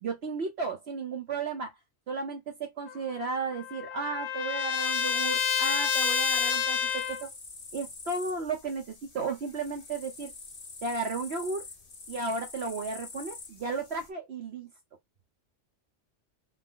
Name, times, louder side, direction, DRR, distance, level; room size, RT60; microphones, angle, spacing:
voice 1, 0.0-1.7 2.1-7.3 7.7-8.8 9.1-10.3 10.8-11.6 12.1-14.7, right 4 dB, 60° right, 1.1 m, -34 dB
Trumpet, 2.9-7.3, left 7 dB, 65° left, 1.1 m, -29 dB
sound 1, 6.4-14.1, left 4 dB, 35° left, 0.8 m, -47 dB
5.7 x 2.0 x 3.8 m
omnidirectional pair, 1.3 m